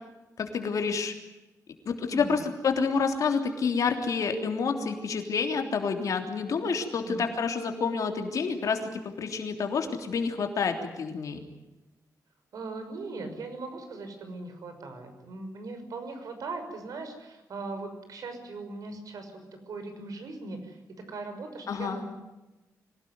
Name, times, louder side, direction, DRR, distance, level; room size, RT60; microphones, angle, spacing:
voice 1, 0.4-1.1 1.8-11.4 21.7-22.0, left 5 dB, 60° left, 5 dB, 3.3 m, -28 dB
voice 2, 2.1-2.4 7.1-7.2 12.5-20.8 21.1-22.1, right 3 dB, 65° right, 6 dB, 6.0 m, -39 dB
25.0 x 18.0 x 9.5 m, 1.0 s
wide cardioid pair, 160°, 6 cm